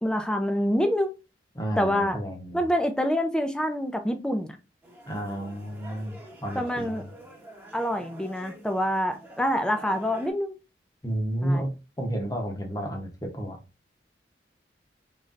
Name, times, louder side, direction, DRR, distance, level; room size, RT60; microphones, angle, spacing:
voice 1, 0.0-1.1 1.8-2.2 2.5-4.5 6.5-7.0 7.7-10.6 11.4-11.7, equal, 5° left, 0.4 m, -26 dB
voice 2, 1.5-2.6 5.1-7.1 11.0-11.7 12.0-13.6, right 1 dB, 20° left, 0.8 m, -31 dB
sound 1, 4.8-10.3, right 1 dB, 10° right, 0.8 m, -46 dB
3.9 x 3.1 x 2.4 m
head